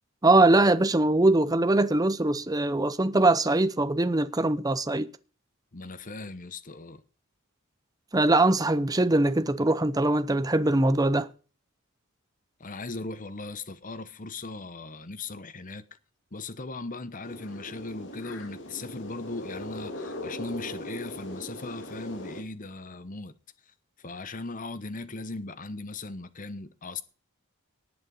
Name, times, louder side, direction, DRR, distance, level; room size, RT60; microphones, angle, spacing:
voice 1, 0.2-5.1 8.1-11.3, right 2 dB, 15° right, 0.7 m, -22 dB
voice 2, 5.7-7.0 12.6-15.8 16.3-23.3 24.0-27.0, left 3 dB, 40° left, 1.0 m, -38 dB
sound 1, 17.2-22.4, left 1 dB, 60° left, 2.3 m, -39 dB
18.5 x 6.5 x 5.5 m
head